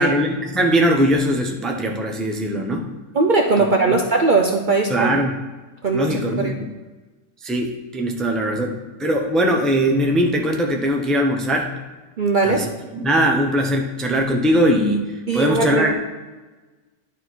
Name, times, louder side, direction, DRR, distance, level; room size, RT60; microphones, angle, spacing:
voice 1, 0.0-2.9 3.9-4.0 4.9-5.4 5.9-6.7 7.4-11.7 12.4-15.9, equal, ahead, 2 dB, 0.6 m, -20 dB
voice 2, 3.1-5.1 5.8-6.5 12.2-12.6 15.3-15.9, right 3 dB, 45° right, 2 dB, 0.7 m, -19 dB
11.0 x 4.3 x 4.5 m, 1.2 s
omnidirectional pair, 1.3 m